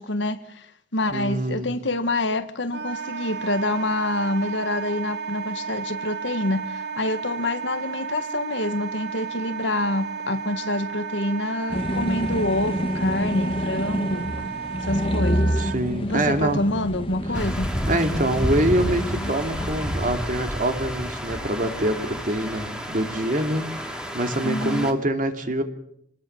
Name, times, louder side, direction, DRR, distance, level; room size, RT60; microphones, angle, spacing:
voice 1, 0.0-14.3 14.8-15.6 16.0-17.7 24.4-24.9, left 1 dB, 70° left, 1.6 m, -27 dB
voice 2, 1.1-1.7 15.6-16.6 17.4-17.5 17.9-25.6, right 1 dB, 45° right, 2.7 m, -25 dB
Wind instrument woodwind instrument, 2.7-15.8, right 6 dB, 60° right, 1.6 m, -33 dB
sound 1, 11.7-20.3, equal, 30° left, 1.7 m, -28 dB
sound 2, 17.3-24.9, equal, 5° right, 2.7 m, -30 dB
27.5 x 20.0 x 7.1 m
head